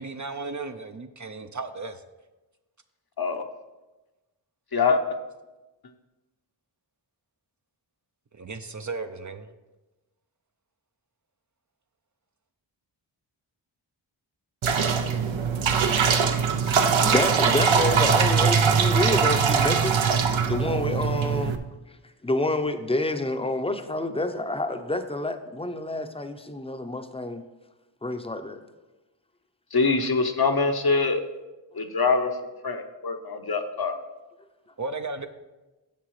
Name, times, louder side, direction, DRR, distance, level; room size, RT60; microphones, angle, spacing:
voice 1, 0.0-2.0 8.3-9.5 34.8-35.3, right 3 dB, 40° right, 8 dB, 0.6 m, -35 dB
sound 1, 14.6-21.6, right 6 dB, 75° right, 0.7 m, -22 dB
voice 2, 16.7-20.0 20.5-21.6 22.2-27.4 28.0-28.6, left 2 dB, 10° left, 8 dB, 0.7 m, -28 dB
voice 3, 29.7-31.2 31.7-32.3 32.6-33.9, left 4 dB, 50° left, 5 dB, 0.9 m, -24 dB
10.5 x 6.7 x 3.2 m, 1.1 s
cardioid pair, 45°, 47 cm